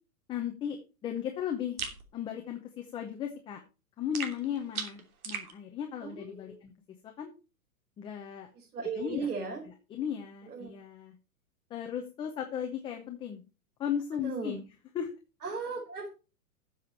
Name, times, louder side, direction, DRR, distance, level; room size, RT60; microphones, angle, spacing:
voice 1, 0.3-1.8 2.1-3.6 4.0-6.7 7.2-7.3 8.0-8.5 9.0-9.3 9.9-11.1 11.7-13.4 13.8-14.6 14.9-15.1, left 9 dB, 10° left, 3 dB, 0.7 m, -36 dB
sound 1, 1.8-2.0 4.1-5.5, right 6 dB, 70° right, 3.1 m, -37 dB
voice 2, 6.0-6.6 8.5-9.6 10.5-10.7 14.2-14.6 15.4-16.1, right 4 dB, 90° right, -1 dB, 4.4 m, -37 dB
13.5 x 7.2 x 4.4 m, 0.32 s
hypercardioid pair, 155°, 45 cm